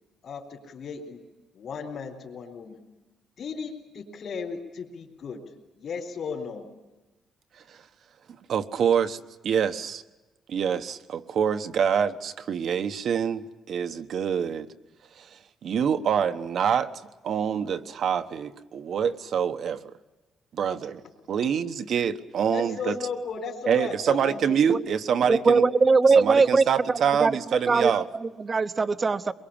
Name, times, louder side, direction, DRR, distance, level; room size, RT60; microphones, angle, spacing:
voice 1, 0.2-1.2 1.5-2.8 3.4-5.4 5.8-6.7 20.7-20.8 22.5-24.7, left 5 dB, 55° left, -3 dB, 4.0 m, -35 dB
voice 2, 8.5-10.0 10.5-14.7 15.2-16.9 17.2-19.8 20.5-21.0 21.3-23.0 23.7-25.6 26.1-28.1, right 7 dB, 60° right, 9 dB, 1.2 m, -26 dB
voice 3, 25.3-29.3, right 4 dB, 30° right, 12 dB, 0.9 m, -21 dB
24.0 x 22.5 x 8.8 m, 1.1 s
cardioid pair, 130°, 0 cm